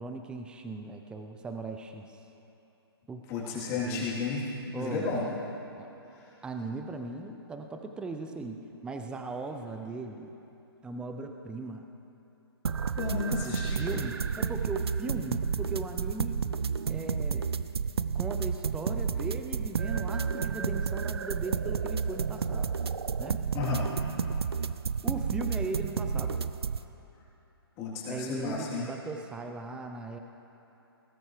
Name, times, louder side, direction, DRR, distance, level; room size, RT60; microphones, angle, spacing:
voice 1, 0.0-2.2 3.1-3.2 3.5-4.1 4.7-5.2 5.8-5.9 6.4-8.6 8.8-10.3 10.8-11.8 13.4-16.4 16.9-17.5 18.1-22.7 23.2-23.4 25.0-26.5 28.1-30.2, right 3 dB, 5° right, 5 dB, 0.6 m, -38 dB
voice 2, 3.3-5.3 13.0-14.0 23.5-23.9 27.8-28.9, left 4 dB, 25° left, -6 dB, 3.5 m, -33 dB
sound 1, 12.7-26.8, right 6 dB, 75° right, 0.5 m, -31 dB
20.0 x 16.5 x 3.3 m, 2.9 s
figure-of-eight pair, 130°, 13 cm